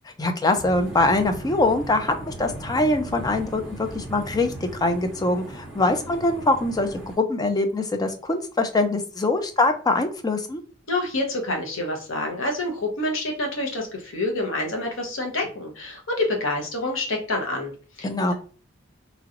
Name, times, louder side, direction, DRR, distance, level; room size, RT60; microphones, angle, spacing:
voice 1, 0.2-10.6 18.0-18.3, left 2 dB, 20° left, 7 dB, 0.4 m, -23 dB
sound 1, 0.5-7.2, right 1 dB, 5° right, 1.0 m, -38 dB
voice 2, 10.9-18.3, left 2 dB, 90° left, 1 dB, 1.0 m, -27 dB
3.0 x 2.9 x 2.5 m, 0.40 s
head